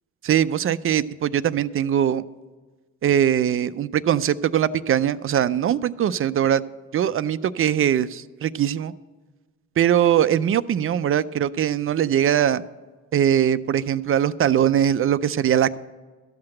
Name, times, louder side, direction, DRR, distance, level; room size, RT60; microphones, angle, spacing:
voice 1, 0.2-2.2 3.0-6.6 6.9-8.9 9.8-12.6 13.1-15.8, right 10 dB, 45° right, 15 dB, 0.4 m, -21 dB
13.0 x 5.8 x 7.6 m, 1.3 s
cardioid pair, 90°, 30 cm